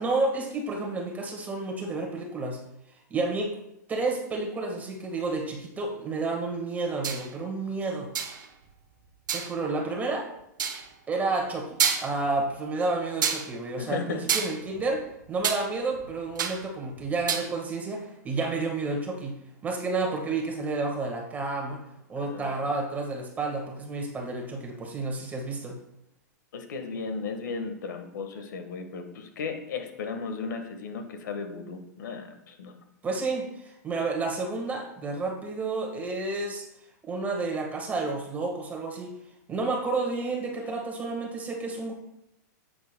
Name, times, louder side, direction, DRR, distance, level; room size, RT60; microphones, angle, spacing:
voice 1, 0.0-2.7 3.1-3.5 3.9-8.1 9.3-10.3 11.1-21.8 22.1-25.8 33.0-36.7 37.0-39.1 39.5-41.9, right 3 dB, 15° right, 1 dB, 1.5 m, -30 dB
sound 1, 7.0-7.3 8.2-8.5 9.3-9.5 10.6-10.9 11.4-11.5 11.8-12.3 13.2-13.5 14.3-15.6 15.9-16.7 17.0-17.5, right 7 dB, 90° right, 1.0 m, -28 dB
voice 2, 13.8-14.2 22.2-22.5 26.5-32.7, left 5 dB, 75° left, 6 dB, 1.4 m, -35 dB
9.2 x 7.8 x 2.2 m, 0.82 s
hypercardioid pair, 135°, 10 cm